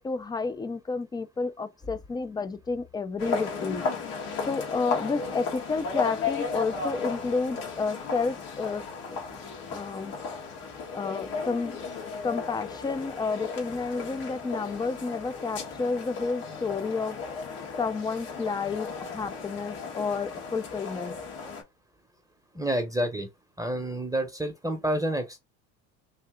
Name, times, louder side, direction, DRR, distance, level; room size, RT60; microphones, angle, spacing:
voice 1, 0.0-3.9 4.5-8.8 9.1-9.2 9.7-10.2 10.9-11.8 12.2-17.2 17.8-21.2, left 4 dB, 10° left, 0.4 m, -30 dB
sound 1, 3.2-21.6, left 4 dB, 75° left, 1.7 m, -35 dB
voice 2, 22.5-23.3 23.6-25.4, right 1 dB, 10° right, 0.8 m, -29 dB
3.3 x 2.7 x 3.6 m
supercardioid pair, 90°, 36 cm